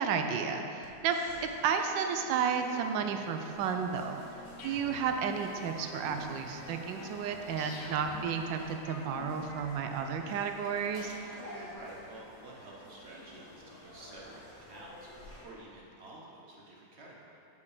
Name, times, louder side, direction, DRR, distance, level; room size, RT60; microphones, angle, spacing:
voice 1, 0.0-4.2 4.6-11.1, right 6 dB, 85° right, 5 dB, 1.3 m, -32 dB
sound 1, 0.8-12.8, equal, 55° left, 1.5 m, -53 dB
sound 2, 3.4-15.4, left 1 dB, 20° left, 1.8 m, -51 dB
sound 3, 4.6-10.4, left 3 dB, 75° left, 1.5 m, -49 dB
voice 2, 11.4-17.3, right 1 dB, 45° right, -4 dB, 0.9 m, -50 dB
7.0 x 5.2 x 4.8 m, 2.7 s
omnidirectional pair, 1.9 m